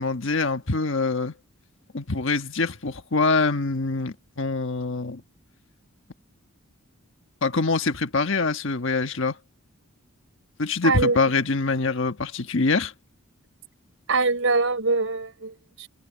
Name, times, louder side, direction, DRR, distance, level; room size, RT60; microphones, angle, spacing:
voice 1, 0.0-1.3 1.9-5.2 7.4-9.3 10.6-12.9, left 3 dB, 60° left, 1.4 m, -24 dB
voice 2, 10.8-11.2 14.1-15.9, right 3 dB, 65° right, 5.2 m, -23 dB
head